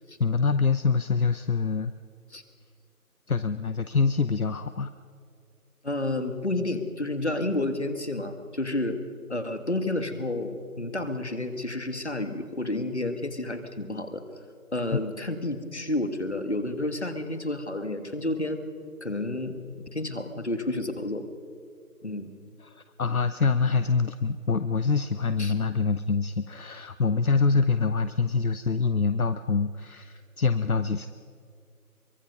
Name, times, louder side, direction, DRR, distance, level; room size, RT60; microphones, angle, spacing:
voice 1, 0.2-1.9 3.3-4.9 14.9-15.0 22.6-31.1, left 4 dB, 70° left, 11 dB, 0.9 m, -25 dB
voice 2, 5.8-9.0 9.3-14.2 14.7-18.6 19.0-21.3 22.0-22.3 25.4-25.5, left 2 dB, 45° left, 8 dB, 1.9 m, -30 dB
24.5 x 23.5 x 5.4 m, 2.2 s
figure-of-eight pair, 175°, 45 cm